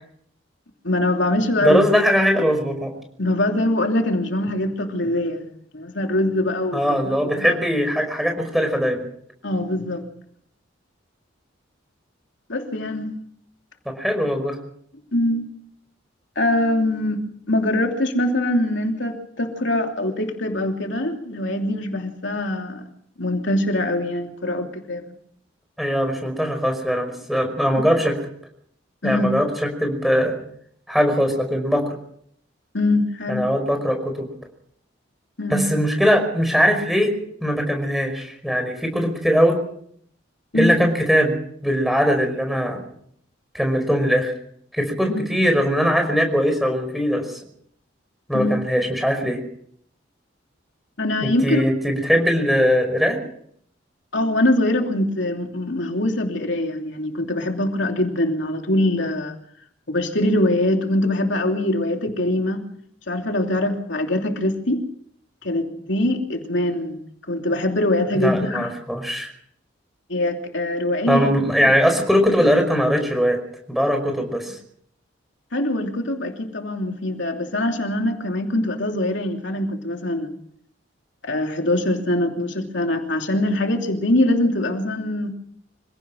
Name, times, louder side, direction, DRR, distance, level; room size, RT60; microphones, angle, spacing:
voice 1, 0.8-1.8 3.2-5.5 5.7-6.8 7.4-7.5 9.4-10.1 12.5-13.1 15.1-15.5 16.3-22.8 23.2-25.1 27.7-27.8 29.0-29.3 32.7-33.5 35.4-35.6 40.5-40.8 45.1-45.2 48.3-48.5 51.0-51.6 54.1-59.4 59.9-62.6 63.1-64.8 65.4-67.0 67.3-68.7 70.1-71.3 75.5-80.3 81.2-85.3, left 1 dB, 70° left, 3 dB, 3.0 m, -23 dB
voice 2, 1.6-2.9 6.7-9.0 14.0-14.6 25.8-28.1 29.0-30.3 30.9-32.0 33.3-34.3 35.5-37.1 37.4-39.6 40.5-41.4 41.6-42.8 43.5-44.3 44.7-47.4 48.3-49.4 51.2-53.2 68.2-69.3 71.1-73.4 73.7-74.6, equal, ahead, 5 dB, 5.3 m, -20 dB
26.5 x 17.0 x 6.4 m, 0.66 s
head